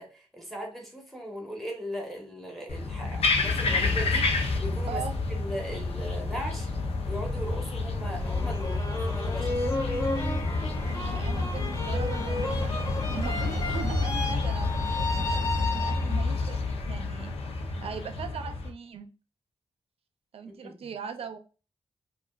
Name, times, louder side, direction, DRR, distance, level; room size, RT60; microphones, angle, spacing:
voice 1, 0.0-5.0 5.3-6.7 7.0-8.8 9.0-9.5 20.5-20.8, equal, ahead, 1.3 m, -38 dB
sound 1, 2.7-18.7, left 3 dB, 85° left, 0.8 m, -29 dB
voice 2, 4.9-5.2 10.8-17.3 17.8-19.1 20.3-21.4, right 6 dB, 75° right, 0.5 m, -39 dB
sound 2, 8.2-16.4, left 2 dB, 35° left, 1.1 m, -34 dB
5.1 x 2.5 x 2.4 m
wide cardioid pair, 135°, 10 cm